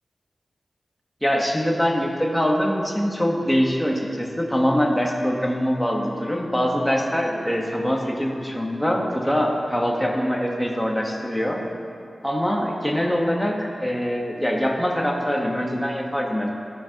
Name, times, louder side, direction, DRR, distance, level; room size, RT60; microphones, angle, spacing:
voice 1, 1.2-11.6 12.2-13.5 13.8-16.5, equal, 5° left, 0 dB, 1.3 m, -23 dB
14.5 x 5.2 x 2.9 m, 2.5 s
cardioid pair, 50°, 0 cm